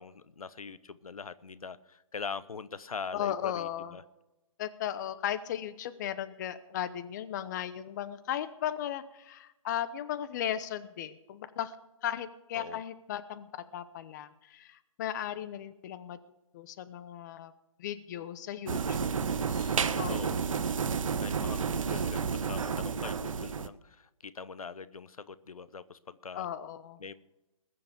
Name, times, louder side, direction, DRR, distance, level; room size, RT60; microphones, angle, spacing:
voice 1, 0.0-4.0 12.5-12.8 20.1-20.6 21.2-26.5 27.0-27.1, left 5 dB, 85° left, 16 dB, 1.0 m, -42 dB
voice 2, 3.1-4.0 4.6-11.8 12.0-16.2 16.5-17.5 17.8-19.1 19.5-20.3 26.3-27.0, left 10 dB, 30° left, 13 dB, 0.9 m, -36 dB
sound 1, 18.7-23.7, right 6 dB, 70° right, 0.9 m, -31 dB
20.5 x 6.9 x 6.7 m, 0.95 s
hypercardioid pair, 150°, 18 cm